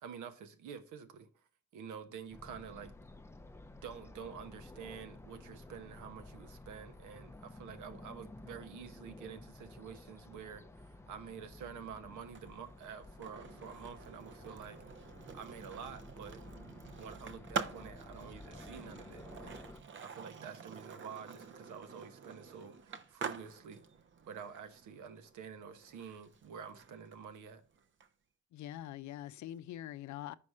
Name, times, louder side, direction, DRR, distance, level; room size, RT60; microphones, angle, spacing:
voice 1, 0.0-1.3 1.7-2.9 3.8-14.8 15.3-16.4 17.0-19.6 20.0-23.8 24.3-27.6, right 7 dB, 80° right, 1.0 m, -48 dB
sound 1, 2.3-19.8, left 2 dB, 10° left, 0.5 m, -53 dB
Skateboard, 12.2-28.1, right 5 dB, 40° right, 0.7 m, -47 dB
voice 2, 28.5-30.4, left 12 dB, 70° left, 0.5 m, -44 dB
5.2 x 4.8 x 5.4 m
cardioid pair, 90°, 30 cm